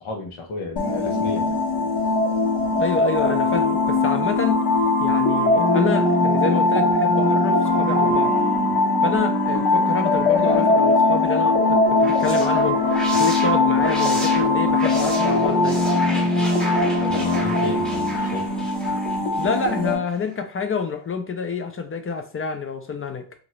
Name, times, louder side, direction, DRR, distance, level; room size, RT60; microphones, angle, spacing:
voice 1, 0.0-1.6 17.0-18.5, left 3 dB, 90° left, 0.9 m, -33 dB
sound 1, 0.8-19.9, left 2 dB, 60° left, 1.0 m, -20 dB
voice 2, 2.8-4.6 5.0-8.3 9.0-12.8 13.1-15.8 19.4-23.2, left 5 dB, 30° left, 0.4 m, -28 dB
sound 2, 11.8-19.9, equal, ahead, 0.7 m, -34 dB
2.8 x 2.5 x 3.1 m
wide cardioid pair, 135°, 48 cm